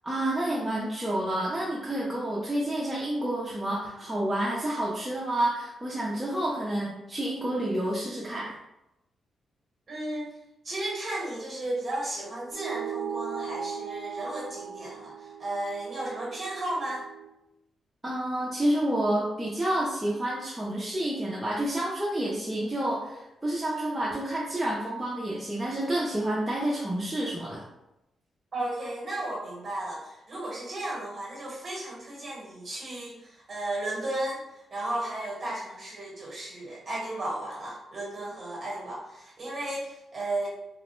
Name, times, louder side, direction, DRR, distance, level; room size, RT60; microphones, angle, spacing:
voice 1, 0.0-8.5 18.0-27.6, right 1 dB, 10° right, -6 dB, 0.4 m, -29 dB
voice 2, 9.9-10.3 10.6-17.0 28.5-40.5, right 1 dB, 30° right, -4 dB, 1.0 m, -34 dB
sound 1, 12.5-17.3, right 7 dB, 85° right, 0.3 m, -38 dB
2.9 x 2.0 x 3.0 m, 0.89 s
wide cardioid pair, 170°, 0 cm